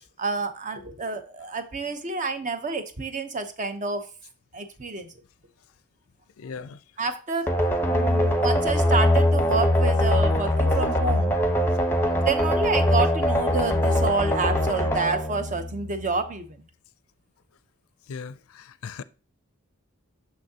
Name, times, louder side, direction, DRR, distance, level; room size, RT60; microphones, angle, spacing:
voice 1, 0.2-4.1 4.5-5.1 7.0-11.4 12.2-16.6, right 4 dB, 35° right, 0.8 m, -28 dB
voice 2, 6.4-6.8 18.1-19.0, left 5 dB, 70° left, 0.4 m, -38 dB
sound 1, 7.5-16.2, left 1 dB, 10° left, 0.9 m, -22 dB
6.3 x 6.1 x 2.8 m
head